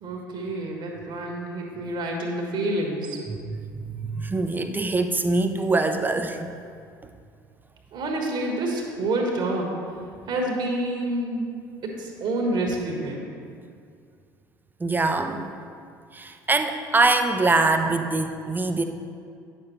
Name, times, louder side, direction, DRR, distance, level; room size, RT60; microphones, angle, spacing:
voice 1, 0.0-3.2 7.9-9.7 10.3-11.5 11.8-13.2, right 1 dB, 50° right, 1 dB, 1.4 m, -28 dB
voice 2, 3.7-6.5 14.8-15.6 16.1-18.8, right 3 dB, 20° right, 6 dB, 0.6 m, -23 dB
9.3 x 6.8 x 3.1 m, 2.3 s
figure-of-eight pair, 60°, 10 cm